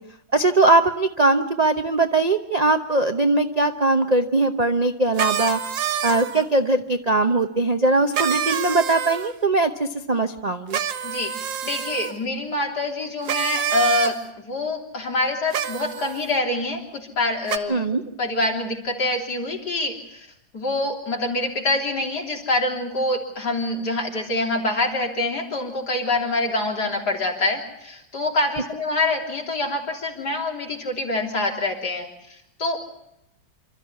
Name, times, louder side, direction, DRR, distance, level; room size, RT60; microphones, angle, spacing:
voice 1, 0.3-5.6 6.0-10.8 17.7-18.0, right 2 dB, 35° right, 8 dB, 0.6 m, -20 dB
sound 1, 5.2-6.5 8.1-9.3 10.7-12.1 13.3-14.1 15.5-16.2 17.5-17.6, right 9 dB, 85° right, 1.8 m, -26 dB
voice 2, 11.6-17.8 18.1-20.3 20.5-32.8, left 2 dB, 60° left, 0 dB, 4.0 m, -25 dB
27.0 x 13.5 x 9.5 m, 0.81 s
omnidirectional pair, 2.0 m